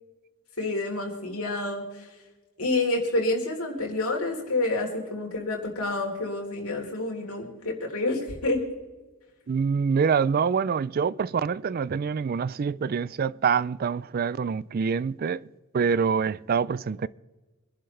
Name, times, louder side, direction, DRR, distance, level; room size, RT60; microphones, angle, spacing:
voice 1, 0.6-2.1 2.6-8.6, left 2 dB, 75° left, 3.8 m, -28 dB
voice 2, 9.5-15.5 15.7-17.1, right 6 dB, 40° right, 0.3 m, -25 dB
25.0 x 11.0 x 3.3 m
head